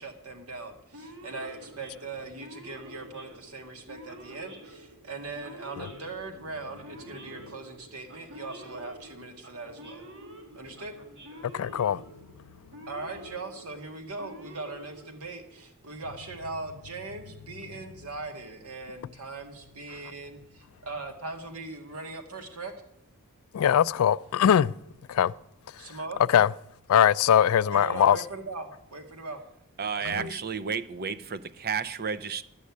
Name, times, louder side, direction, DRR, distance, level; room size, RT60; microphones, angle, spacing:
voice 1, 0.0-10.1 10.5-10.9 12.9-22.7 25.8-26.2 27.6-29.4 30.0-30.3, right 3 dB, 85° right, 1.7 m, -40 dB
Male speech man speaking / Siren, 0.9-15.7, right 1 dB, 60° right, 1.6 m, -48 dB
voice 2, 11.5-12.0 23.5-24.7 25.1-25.3 26.3-26.5 26.9-28.2 30.0-30.3, left 9 dB, 70° left, 0.3 m, -21 dB
voice 3, 29.8-32.4, right 6 dB, 45° right, 0.6 m, -32 dB
12.5 x 6.4 x 8.3 m
head